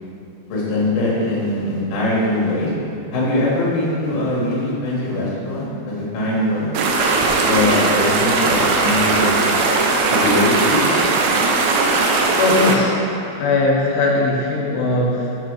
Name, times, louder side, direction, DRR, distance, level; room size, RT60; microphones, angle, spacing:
voice 1, 0.5-2.7 3.1-6.7 7.4-9.6 10.1-11.1, left 1 dB, 65° left, -6 dB, 1.5 m, -21 dB
sound 1, 6.7-12.8, right 3 dB, 90° right, 2.1 m, -18 dB
voice 2, 12.4-13.0 13.4-15.4, left 2 dB, 80° left, -1 dB, 2.6 m, -19 dB
6.7 x 4.4 x 4.8 m, 2.7 s
omnidirectional pair, 5.2 m